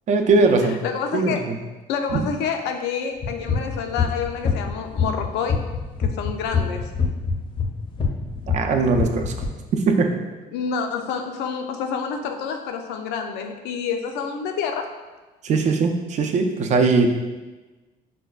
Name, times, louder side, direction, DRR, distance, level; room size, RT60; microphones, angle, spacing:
voice 1, 0.1-0.8 1.1-1.6 2.1-2.2 8.5-9.3 9.7-10.2 15.4-17.1, right 4 dB, 45° right, 4 dB, 0.4 m, -20 dB
voice 2, 0.6-1.4 1.9-5.6 6.0-6.9 10.5-14.9, left 6 dB, 85° left, 5 dB, 0.4 m, -28 dB
sound 1, 3.2-9.5, left 6 dB, 30° left, 0.5 m, -24 dB
5.0 x 2.2 x 2.3 m, 1.2 s
cardioid pair, 110°, 17 cm